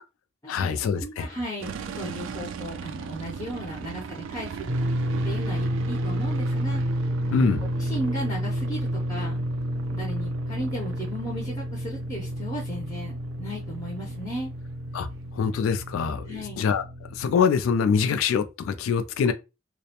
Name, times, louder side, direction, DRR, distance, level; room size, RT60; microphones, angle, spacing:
voice 1, 0.5-1.3 7.3-7.6 14.9-15.1 15.3-16.8 17.2-19.3, left 6 dB, 80° left, 0.3 m, -24 dB
voice 2, 1.0-4.7 5.2-6.8 7.3-7.5 7.8-9.4 9.9-14.5 16.3-16.6, equal, 20° left, 0.5 m, -35 dB
sound 1, 1.6-16.4, right 6 dB, 65° right, 0.3 m, -40 dB
sound 2, 4.7-17.4, equal, 85° right, 0.8 m, -30 dB
2.3 x 2.1 x 2.8 m
head